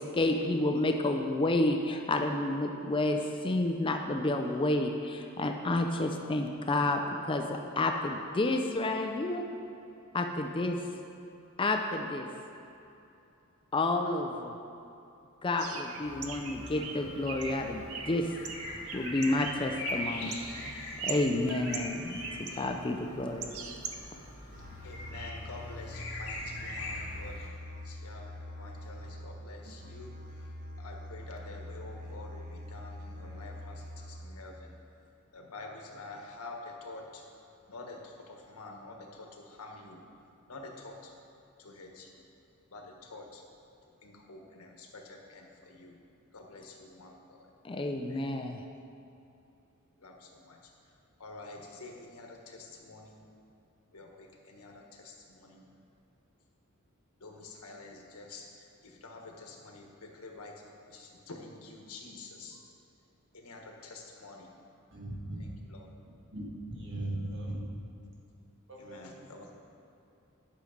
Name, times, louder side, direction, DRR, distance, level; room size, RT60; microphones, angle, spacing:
voice 1, 0.0-9.5 10.1-10.8 11.6-12.3 13.7-14.5 15.4-18.3 18.9-20.4 20.6-20.8 21.0-23.5 47.6-48.6, left 2 dB, 25° left, 4 dB, 0.5 m, -30 dB
Bird, 15.6-24.3, right 5 dB, 80° right, 0.8 m, -42 dB
sound 1, 16.0-27.5, left 2 dB, 55° left, 2.6 m, -42 dB
Musical instrument, 24.5-34.5, left 1 dB, 40° right, 1.2 m, -44 dB
voice 2, 24.8-27.4 27.8-30.5 30.8-34.8 35.3-37.2 37.7-40.0 40.5-41.1 41.6-42.3 42.7-43.4 44.0-46.0 46.3-47.5 48.1-48.3 50.0-50.6 51.2-53.2 53.9-55.6 57.2-62.7 63.3-64.5 65.4-65.9 68.8-69.5, left 2 dB, 90° left, 1 dB, 1.3 m, -48 dB
voice 3, 64.9-65.4 66.3-67.6 68.7-69.0, right 1 dB, 55° right, -3 dB, 1.9 m, -38 dB
11.5 x 6.4 x 5.1 m, 2.8 s
head